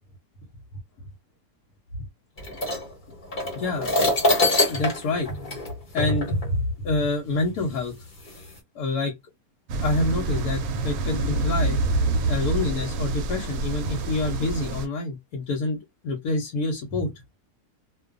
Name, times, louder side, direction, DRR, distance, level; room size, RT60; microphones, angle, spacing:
sound 1, 2.4-6.5 7.4-7.5 8.2-8.6, left 1 dB, 35° left, 1.0 m, -25 dB
voice 1, 3.5-4.1 4.7-5.6 5.9-7.9 8.7-9.1 9.8-11.8 12.3-17.1, left 2 dB, 75° left, 1.2 m, -27 dB
sound 2, 9.7-14.9, right 3 dB, 70° right, 0.9 m, -26 dB
2.5 x 2.3 x 2.3 m
omnidirectional pair, 1.7 m